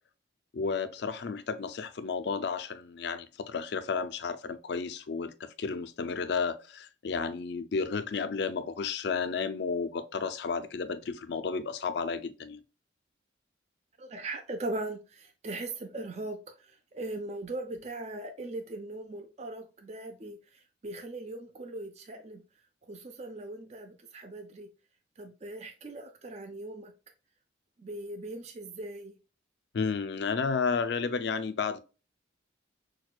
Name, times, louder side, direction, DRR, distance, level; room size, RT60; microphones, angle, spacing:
voice 1, 0.5-12.6 29.7-31.8, left 5 dB, 60° left, 0.4 m, -32 dB
voice 2, 14.0-22.4 22.9-24.7 25.2-26.9 27.8-29.2, right 2 dB, 35° right, 0.4 m, -39 dB
6.0 x 2.2 x 2.3 m
head